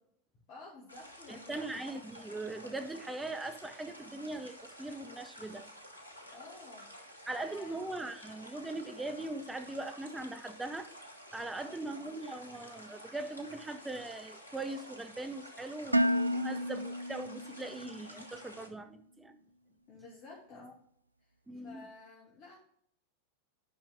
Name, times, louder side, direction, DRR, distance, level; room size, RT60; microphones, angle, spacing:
voice 1, 0.5-1.8 6.3-6.9 7.4-7.7 11.6-11.9 19.9-20.8 21.5-22.6, left 3 dB, 40° left, -4 dB, 2.3 m, -52 dB
sound 1, 0.9-18.7, equal, 85° left, 1.1 m, -51 dB
voice 2, 1.3-5.7 7.3-10.9 11.3-19.3 21.5-21.8, right 2 dB, 10° right, 7 dB, 0.7 m, -40 dB
Dishes pots and pans, 15.9-18.0, equal, 85° right, 0.3 m, -31 dB
9.9 x 5.6 x 3.6 m, 0.64 s
figure-of-eight pair, 90°, 0 cm